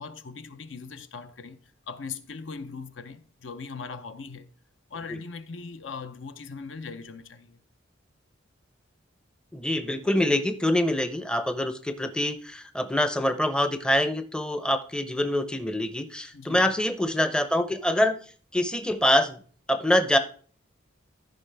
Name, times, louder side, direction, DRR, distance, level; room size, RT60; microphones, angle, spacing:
voice 1, 0.0-1.6 1.9-4.5 4.9-7.6 16.3-16.7, left 5 dB, 70° left, 0.7 m, -40 dB
voice 2, 9.5-18.2 18.5-19.4 19.7-20.2, left 1 dB, 5° left, 0.6 m, -25 dB
14.0 x 5.4 x 3.3 m
head